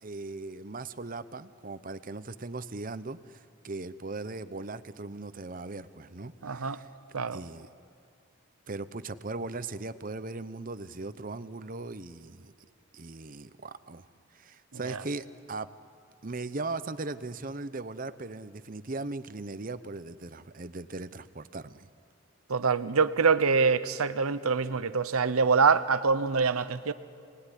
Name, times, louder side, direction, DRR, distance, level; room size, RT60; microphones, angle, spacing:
voice 1, 0.0-6.9 7.1-7.7 8.7-12.5 12.9-14.1 14.3-15.7 16.2-21.9, right 3 dB, 40° right, 0.8 m, -38 dB
voice 2, 6.4-6.8 7.1-7.4 14.9-15.0 22.5-26.9, right 5 dB, 85° right, 0.8 m, -25 dB
28.5 x 19.5 x 10.0 m
head